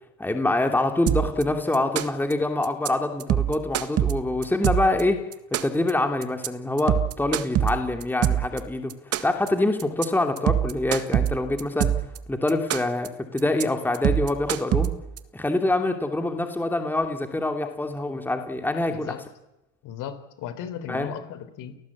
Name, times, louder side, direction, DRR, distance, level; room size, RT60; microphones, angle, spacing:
voice 1, 0.2-5.2 5.6-8.9 9.2-11.9 12.3-14.9 15.3-19.1 20.9-21.1, left 2 dB, 5° left, 5 dB, 2.8 m, -25 dB
sound 1, 1.1-1.4 1.7-2.3 2.6-2.9 3.2-5.0 5.3-5.9 6.2-6.5 6.8-8.6 8.9-9.5 9.8-10.1 10.4-12.2 12.5-13.1 13.4-13.6 13.9-15.2, right 11 dB, 40° right, 1.8 m, -24 dB
voice 2, 18.9-19.2 19.8-21.8, left 9 dB, 50° left, 13 dB, 3.9 m, -36 dB
29.0 x 18.5 x 8.6 m, 0.94 s
supercardioid pair, 115°, 38 cm